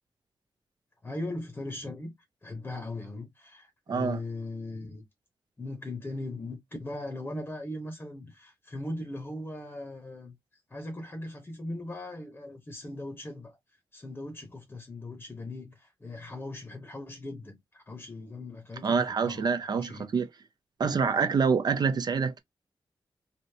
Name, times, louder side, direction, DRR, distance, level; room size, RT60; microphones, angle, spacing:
voice 1, 1.0-2.1 2.4-5.0 5.6-10.4 10.7-13.6 13.9-20.1, left 2 dB, 20° left, 0.8 m, -39 dB
voice 2, 3.9-4.2 18.8-20.3 20.8-22.4, right 5 dB, 50° right, 0.4 m, -26 dB
3.3 x 2.7 x 2.6 m
wide cardioid pair, 170°, 9 cm